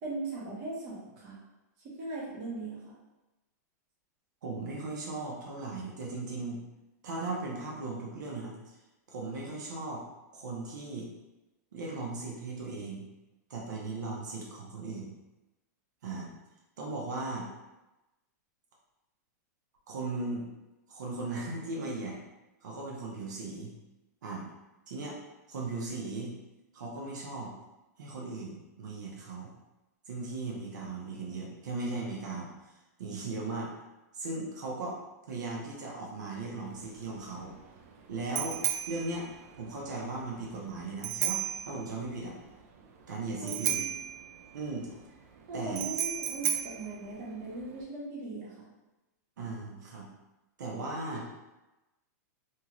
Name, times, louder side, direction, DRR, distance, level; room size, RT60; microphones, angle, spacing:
voice 1, 0.0-1.4 1.8-2.9 43.4-43.9 45.5-48.7, right 2 dB, 35° right, -6 dB, 0.9 m, -39 dB
voice 2, 4.4-6.6 7.0-8.8 9.1-10.0 10.3-11.1 11.7-13.1 13.5-15.1 16.0-16.3 16.8-17.5 19.9-20.5 20.9-22.2 22.6-23.7 24.2-24.4 24.9-25.2 25.5-26.3 26.7-27.5 28.0-29.5 30.1-33.7 34.1-35.0 35.3-37.5 38.1-39.3 39.6-42.3 43.1-43.9 44.5-44.9 45.5-45.8 49.4-50.0 50.6-51.3, right 3 dB, 85° right, -3 dB, 0.8 m, -37 dB
Bicycle bell, 36.7-47.8, right 10 dB, 55° right, 0.4 m, -36 dB
2.8 x 2.4 x 2.9 m, 1.0 s
supercardioid pair, 160°, 9 cm